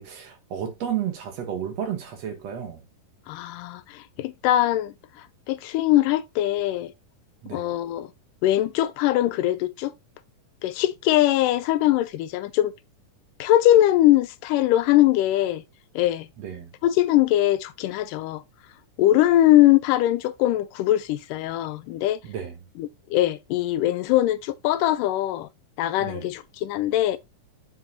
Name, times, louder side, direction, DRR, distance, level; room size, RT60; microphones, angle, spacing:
voice 1, 0.0-2.8 7.4-7.7 16.4-16.7 22.2-22.6 26.0-26.3, right 9 dB, 60° right, 2.1 m, -32 dB
voice 2, 3.3-6.9 7.5-8.1 8.4-9.9 10.6-12.7 13.4-15.6 16.0-16.3 16.8-18.4 19.0-22.2 22.8-25.5 25.8-27.2, left 14 dB, 85° left, 2.2 m, -21 dB
8.0 x 4.7 x 2.8 m
omnidirectional pair, 3.8 m